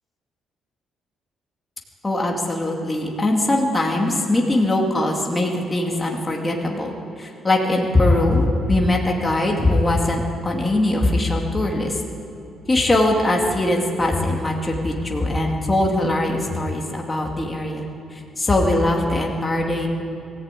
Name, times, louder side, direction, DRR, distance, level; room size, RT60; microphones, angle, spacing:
voice 1, 2.0-6.9 7.2-12.0 12.7-19.9, left 1 dB, 15° left, 0 dB, 2.3 m, -21 dB
22.0 x 15.0 x 9.1 m, 2.8 s
cardioid pair, 140°, 0 cm